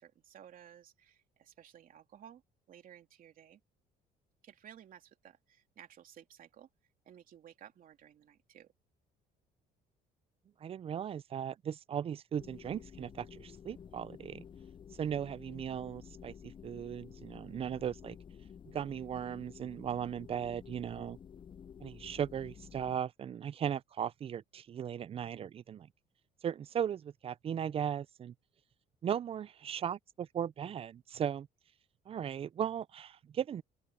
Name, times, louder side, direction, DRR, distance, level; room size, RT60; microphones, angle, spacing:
voice 1, 0.0-2.4 2.7-3.6 4.4-6.7 7.0-8.7, right 10 dB, 55° right, 3.1 m, -56 dB
voice 2, 10.6-14.4 15.0-18.2 18.7-21.2 21.8-25.9 26.4-28.3 29.0-31.5 32.1-33.6, right 9 dB, 35° right, 0.4 m, -37 dB
sound 1, 12.4-23.0, left 7 dB, 30° left, 0.4 m, -52 dB
open air
cardioid pair, 110°, 17 cm